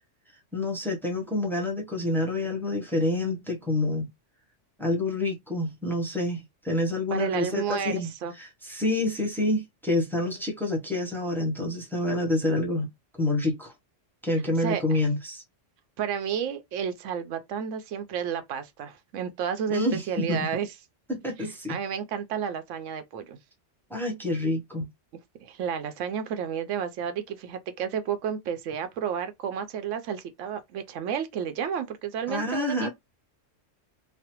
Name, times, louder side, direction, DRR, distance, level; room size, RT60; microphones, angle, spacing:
voice 1, 0.5-4.1 4.8-8.1 8.4-12.9 13.2-13.7 14.2-15.4 19.7-20.5 21.1-21.8 23.9-24.9 32.3-32.9, left 2 dB, ahead, 0.6 m, -28 dB
voice 2, 7.1-8.3 14.6-14.8 16.0-20.7 21.7-23.4 25.4-32.9, right 8 dB, 85° right, 0.9 m, -31 dB
3.2 x 2.1 x 2.8 m
omnidirectional pair, 1.3 m